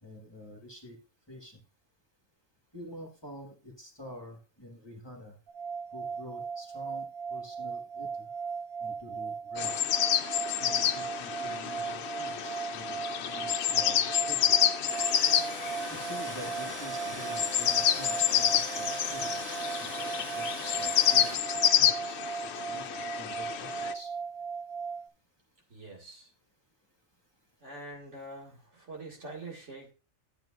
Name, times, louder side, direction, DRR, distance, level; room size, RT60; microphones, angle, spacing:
voice 1, 0.0-1.0 1.3-1.6 2.7-5.3 5.9-8.3 8.8-9.7 10.6-14.5 15.9-24.1, equal, 20° left, 1 dB, 1.4 m, -47 dB
sound 1, 5.5-25.0, right 6 dB, 85° right, 1.4 m, -37 dB
sound 2, 9.6-23.9, left 10 dB, 60° left, 0.8 m, -29 dB
Tools, 14.7-21.4, right 3 dB, 35° right, 0.8 m, -42 dB
voice 2, 25.7-26.3 27.6-29.9, right 2 dB, 65° right, 0 dB, 2.3 m, -45 dB
12.0 x 7.9 x 2.4 m, 0.30 s
omnidirectional pair, 1.4 m